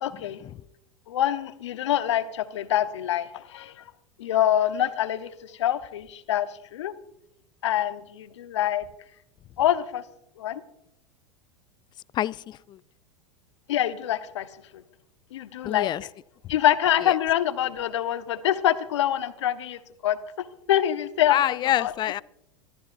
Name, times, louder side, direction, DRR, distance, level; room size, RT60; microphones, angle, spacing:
voice 1, 0.0-0.4 1.1-3.7 4.2-5.3 5.6-6.5 6.7-6.9 7.6-8.8 9.6-10.0 10.4-10.6 13.7-14.5 15.3-15.9 16.5-21.9, left 11 dB, 70° left, 1.2 m, -25 dB
voice 2, 12.1-12.8 15.6-16.0 17.0-17.1 21.3-22.2, left 12 dB, 30° left, 0.4 m, -26 dB
25.5 x 14.5 x 2.6 m
hypercardioid pair, 90°, 16 cm